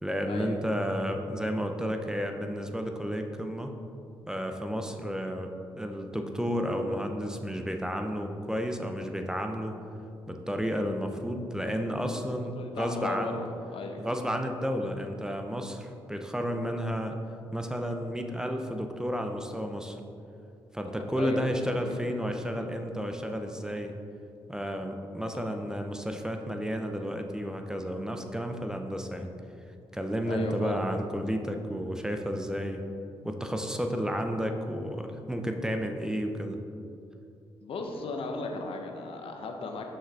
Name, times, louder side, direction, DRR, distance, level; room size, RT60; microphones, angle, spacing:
voice 1, 0.0-3.7 4.3-9.8 10.3-13.4 14.0-17.2 17.5-20.0 20.7-23.9 24.5-29.3 29.9-32.8 33.2-36.6, equal, 5° right, 5 dB, 0.6 m, -32 dB
voice 2, 12.6-13.5 13.7-14.0 21.2-22.0 25.3-25.4 30.2-30.7 37.6-39.8, left 3 dB, 65° left, 3 dB, 0.8 m, -36 dB
5.8 x 5.2 x 4.1 m, 2.6 s
supercardioid pair, 55°, 10 cm